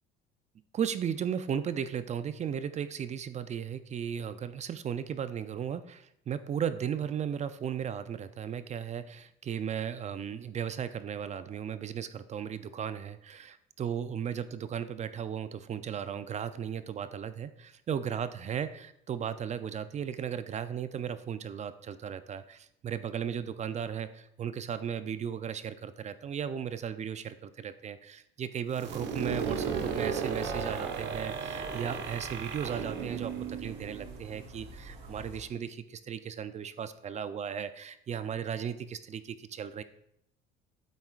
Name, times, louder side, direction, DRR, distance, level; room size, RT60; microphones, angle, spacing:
voice 1, 0.7-39.8, right 8 dB, 35° right, 13 dB, 0.5 m, -36 dB
sound 1, 28.7-34.4, right 6 dB, 65° right, 1.1 m, -35 dB
sound 2, 29.8-35.4, right 2 dB, 85° right, 1.7 m, -46 dB
9.5 x 7.8 x 2.4 m, 0.77 s
cardioid pair, 105°, 20 cm